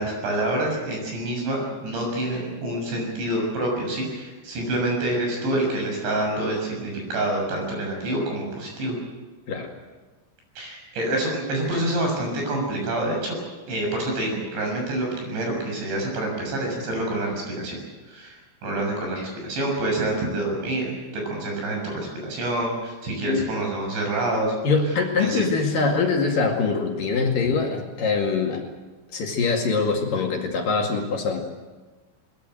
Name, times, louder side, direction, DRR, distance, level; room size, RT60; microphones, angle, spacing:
voice 1, 0.0-9.0 10.6-13.4 13.7-17.8 18.1-24.5 24.9-25.4, right 1 dB, 75° right, 1 dB, 9.0 m, -27 dB
voice 2, 24.6-28.6 29.1-31.4, left 4 dB, 55° left, 1 dB, 3.5 m, -23 dB
22.0 x 21.0 x 7.9 m, 1.3 s
omnidirectional pair, 5.2 m